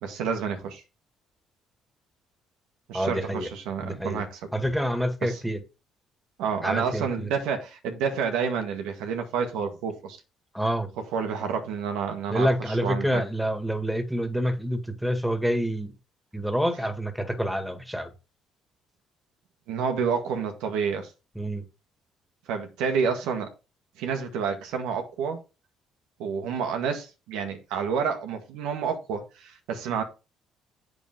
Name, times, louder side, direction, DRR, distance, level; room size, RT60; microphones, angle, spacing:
voice 1, 0.0-0.8 2.9-4.4 5.2-5.4 6.4-10.2 11.1-13.2 19.7-21.1 22.5-23.5 24.0-25.4 26.2-30.0, right 6 dB, 90° right, 1.8 m, -29 dB
voice 2, 2.9-3.5 3.8-4.2 4.5-5.6 6.6-7.3 10.5-10.9 12.3-15.9 16.3-18.1 21.4-21.6, equal, ahead, 2.0 m, -27 dB
8.1 x 6.9 x 3.7 m
cardioid pair, 90°, 0 cm